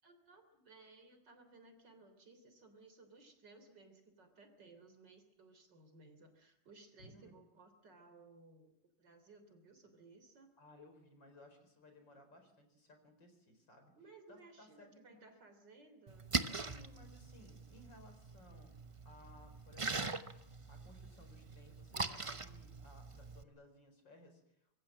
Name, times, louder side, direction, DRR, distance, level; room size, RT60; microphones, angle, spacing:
voice 1, 0.0-10.5 13.9-16.5, right 3 dB, 60° right, 8 dB, 4.1 m, -60 dB
voice 2, 7.0-7.4 10.6-13.9 14.3-15.2 16.6-18.7 19.1-20.2 20.7-24.8, left 1 dB, 65° left, 6 dB, 5.2 m, -61 dB
Splash splatter, 16.1-23.4, right 3 dB, 30° right, 0.5 m, -42 dB
25.0 x 22.0 x 7.6 m, 0.80 s
omnidirectional pair, 2.1 m